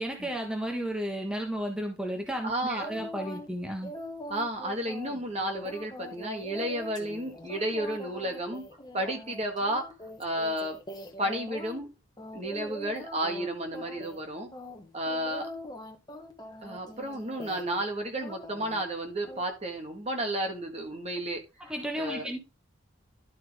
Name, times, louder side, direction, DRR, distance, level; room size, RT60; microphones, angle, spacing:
voice 1, 0.0-3.9 21.7-22.4, equal, 5° right, 2 dB, 1.4 m, -33 dB
voice 2, 2.4-2.9 4.3-8.7 8.9-9.9 10.2-10.8 11.2-11.9 12.3-14.5 14.9-15.5 16.6-21.4 22.0-22.3, right 1 dB, 30° right, 4 dB, 1.6 m, -32 dB
sound 1, 2.8-3.5 3.8-11.8 12.2-13.5 13.7-14.2 14.5-17.9 18.2-18.8 19.2-19.4, equal, 20° left, 1.2 m, -42 dB
11.5 x 5.9 x 3.5 m, 0.26 s
head